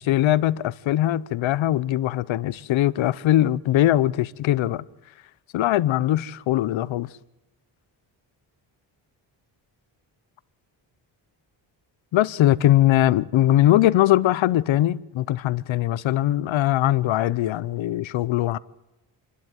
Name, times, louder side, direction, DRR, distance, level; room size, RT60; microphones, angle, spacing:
voice 1, 0.0-4.8 5.5-7.1 12.1-18.6, left 13 dB, 85° left, 0.8 m, -21 dB
28.0 x 11.5 x 9.2 m
cardioid pair, 80°, 45 cm